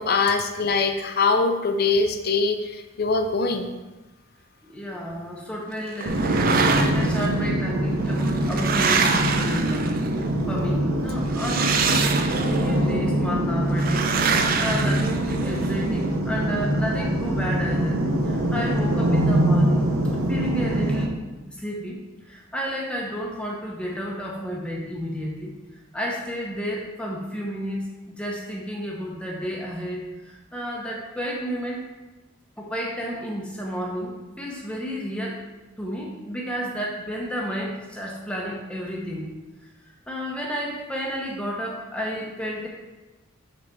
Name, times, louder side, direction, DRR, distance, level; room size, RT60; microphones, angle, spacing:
voice 1, 0.0-3.7, left 4 dB, 45° left, 7 dB, 0.5 m, -23 dB
voice 2, 4.6-18.0 18.2-19.8 20.3-21.1 21.4-22.0 22.3-25.5 25.9-31.8 32.6-35.4 35.8-39.3 40.1-42.7, equal, 5° left, -2 dB, 0.8 m, -31 dB
sound 1, 6.0-7.3 8.1-10.2 11.3-12.7 13.8-15.7, right 5 dB, 40° right, 0.4 m, -25 dB
sound 2, 6.1-21.1, right 1 dB, 85° right, 0.9 m, -24 dB
6.6 x 4.0 x 4.6 m, 1.1 s
head